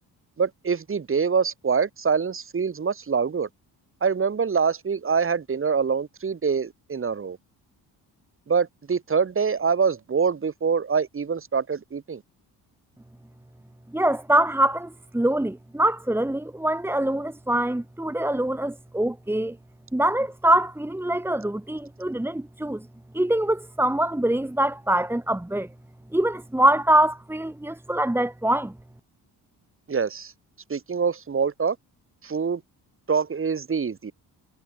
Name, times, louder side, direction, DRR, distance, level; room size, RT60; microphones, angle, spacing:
voice 1, 0.4-3.5 4.0-7.4 8.5-12.2 29.9-30.3 30.7-31.8 32.2-32.6 33.1-34.1, right 6 dB, 35° right, 6.8 m, -25 dB
voice 2, 13.9-19.6 19.9-22.9 23.1-25.7 26.1-28.7, right 1 dB, 5° right, 2.7 m, -24 dB
cardioid pair, 125°, 37 cm